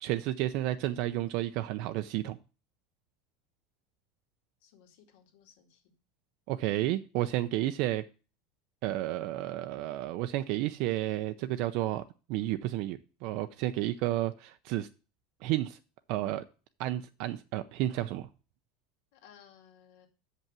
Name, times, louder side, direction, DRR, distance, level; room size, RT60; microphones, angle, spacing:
voice 1, 0.0-2.4 6.5-8.0 8.8-12.0 12.3-14.9 15.4-15.8 16.1-16.4 16.8-18.3, right 15 dB, 55° right, 0.5 m, -31 dB
voice 2, 4.6-5.9 19.1-20.1, left 8 dB, 75° left, 2.3 m, -59 dB
7.0 x 5.5 x 7.4 m
supercardioid pair, 155°, 0 cm